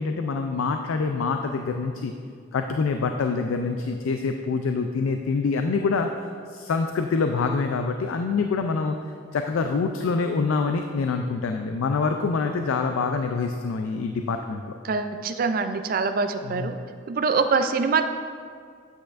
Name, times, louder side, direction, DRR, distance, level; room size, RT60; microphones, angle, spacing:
voice 1, 0.0-2.1 2.5-6.1 6.5-8.9 9.3-14.8 16.4-16.7, left 4 dB, 90° left, 5 dB, 0.4 m, -25 dB
voice 2, 14.8-16.8 17.1-18.1, right 4 dB, 45° right, 8 dB, 0.4 m, -24 dB
8.7 x 8.1 x 2.5 m, 2.2 s
head